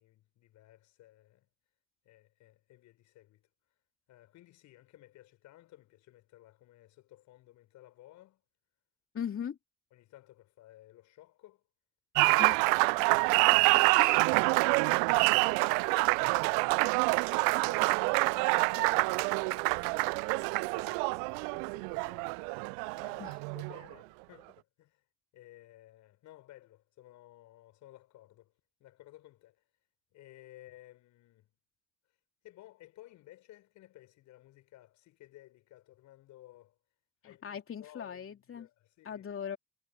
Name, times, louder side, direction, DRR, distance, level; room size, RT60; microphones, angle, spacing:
voice 1, 0.0-1.5 2.0-3.4 4.1-8.4 9.9-11.6 13.0-22.4 22.9-25.0 25.3-28.5 28.8-29.6 30.1-31.5 32.4-36.8 37.2-39.2, left 15 dB, 60° left, 6.0 m, -57 dB
voice 2, 9.1-9.6 12.4-12.7 14.0-14.2 23.2-23.4 37.2-38.7 39.0-39.6, left 8 dB, 40° left, 3.1 m, -39 dB
Applause, 12.2-23.9, right 38 dB, 65° right, 0.5 m, -27 dB
figure-of-eight pair, 50°, 32 cm